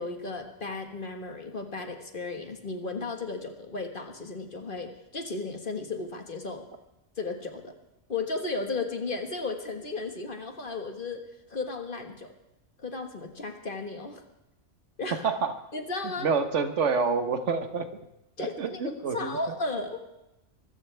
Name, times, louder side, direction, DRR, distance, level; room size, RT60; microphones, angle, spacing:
voice 1, 0.0-6.6 7.2-7.7 8.1-11.2 11.5-12.3 12.8-14.2 15.0-15.2 15.7-16.3 18.4-18.8 19.1-20.1, left 3 dB, 45° left, 5 dB, 1.7 m, -34 dB
voice 2, 16.2-17.9 18.4-19.5, right 5 dB, 85° right, 8 dB, 1.5 m, -28 dB
24.0 x 14.5 x 3.4 m, 0.92 s
omnidirectional pair, 1.2 m